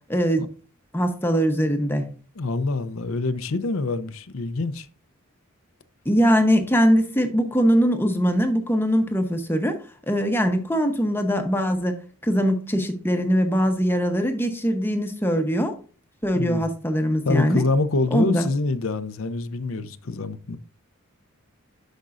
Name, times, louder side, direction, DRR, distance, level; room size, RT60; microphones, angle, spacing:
voice 1, 0.1-0.5 0.9-2.1 6.0-9.8 10.1-12.0 12.2-15.7 16.2-17.6 18.1-18.5, equal, 10° left, 0.9 m, -21 dB
voice 2, 2.4-4.9 16.4-16.7 17.3-20.6, left 3 dB, 60° left, 0.6 m, -25 dB
11.5 x 5.2 x 2.5 m
head